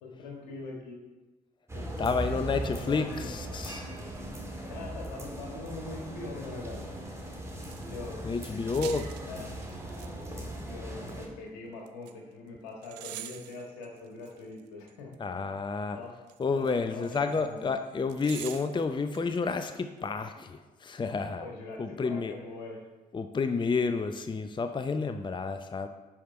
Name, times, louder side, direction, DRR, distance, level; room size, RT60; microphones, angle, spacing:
voice 1, 0.0-1.2 1.7-1.9 2.2-3.3 4.6-6.8 7.9-8.2 9.3-9.5 10.3-15.1 15.9-16.1 16.5-17.7 21.4-22.8, left 3 dB, 75° left, 0 dB, 1.6 m, -42 dB
sound 1, 1.7-11.3, equal, 15° right, 2.2 m, -39 dB
voice 2, 2.0-3.9 8.2-9.1 15.2-16.0 16.4-21.5 21.8-22.3 23.1-25.9, left 4 dB, 20° left, 9 dB, 0.6 m, -30 dB
sound 2, 7.7-8.1 8.6-10.1 10.4-10.5 11.9-12.1 12.8-15.1 16.3-17.7 18.1-19.4 19.6-19.7, right 13 dB, 80° right, 0.4 m, -45 dB
10.0 x 5.1 x 4.4 m, 1.1 s
figure-of-eight pair, 45°, 21 cm